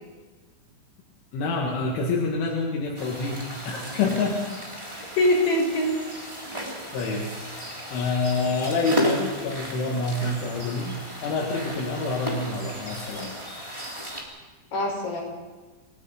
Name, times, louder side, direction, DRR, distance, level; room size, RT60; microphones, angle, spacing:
voice 1, 1.3-4.5 6.9-7.3 7.9-13.4, left 3 dB, 75° left, -2 dB, 4.3 m, -27 dB
sound 1, 2.9-14.2, equal, 10° right, 2.3 m, -34 dB
voice 2, 5.2-6.3 14.7-15.2, left 1 dB, 45° left, -3 dB, 7.7 m, -24 dB
28.5 x 19.0 x 5.1 m, 1.3 s
omnidirectional pair, 5.6 m